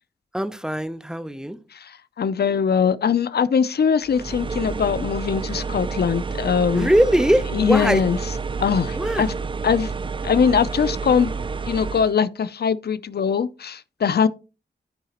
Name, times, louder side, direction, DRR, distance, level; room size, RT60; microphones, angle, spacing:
voice 1, 0.3-1.6 6.7-8.0 8.9-9.3, equal, 5° right, 0.7 m, -21 dB
voice 2, 1.7-6.9 7.5-8.2 8.6-9.3 9.6-9.9 10.2-11.3 11.7-14.3, left 7 dB, 65° left, 0.5 m, -21 dB
sound 1, 4.0-12.1, right 5 dB, 30° right, 0.4 m, -29 dB
14.0 x 4.8 x 3.0 m
wide cardioid pair, 65°, 18 cm